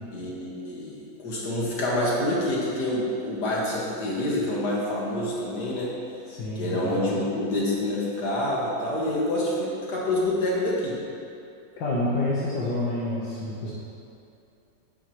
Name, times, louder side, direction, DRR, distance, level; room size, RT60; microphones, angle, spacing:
voice 1, 0.1-5.9 6.6-11.0, left 1 dB, 60° left, -5 dB, 2.4 m, -27 dB
voice 2, 6.3-7.0 11.8-13.7, left 1 dB, 75° left, -7 dB, 2.0 m, -28 dB
11.5 x 9.7 x 3.2 m, 2.6 s
omnidirectional pair, 2.0 m